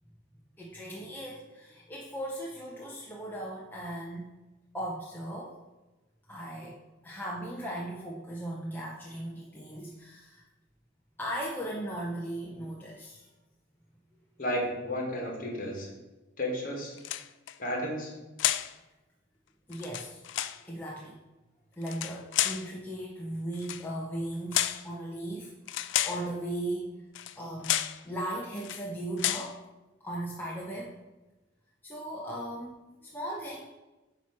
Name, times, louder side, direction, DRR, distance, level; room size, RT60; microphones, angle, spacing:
voice 1, 0.6-4.3 4.7-5.6 6.3-10.4 11.2-13.3 19.7-20.2 20.6-21.2 21.8-26.9 27.4-27.8 28.0-29.6 30.0-31.0 31.8-33.7, right 1 dB, 10° left, -4 dB, 0.6 m, -37 dB
voice 2, 14.4-15.9 16.4-16.9 17.6-18.1, equal, 40° left, -1 dB, 1.8 m, -32 dB
sound 1, 17.0-17.5 18.4-18.7 19.7-20.6 21.8-22.7 23.6-23.9 24.5-24.9 25.7-26.3 27.1-27.4 27.6-28.0 28.6-28.8 29.2-29.5, left 12 dB, 60° left, 0.3 m, -30 dB
8.8 x 3.0 x 5.9 m, 1.1 s
head